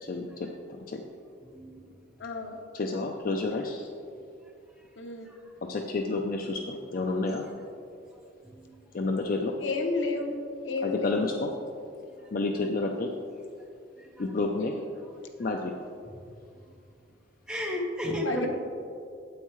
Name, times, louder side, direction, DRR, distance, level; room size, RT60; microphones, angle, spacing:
voice 1, 0.0-1.0 2.7-3.9 5.6-7.5 8.9-9.6 10.8-11.5 12.3-13.1 14.2-14.7 15.4-15.8, left 3 dB, 50° left, 3 dB, 0.5 m, -30 dB
voice 2, 1.5-1.9 5.2-5.4 8.4-8.8 12.2-12.3 14.0-14.1 15.4-15.5 17.5-18.5, left 1 dB, 5° right, -2 dB, 1.1 m, -33 dB
voice 3, 2.2-2.6 5.0-5.3 9.6-10.3 10.6-11.2 18.2-18.5, left 3 dB, 85° left, 5 dB, 0.8 m, -31 dB
9.1 x 8.2 x 3.1 m, 2.4 s
head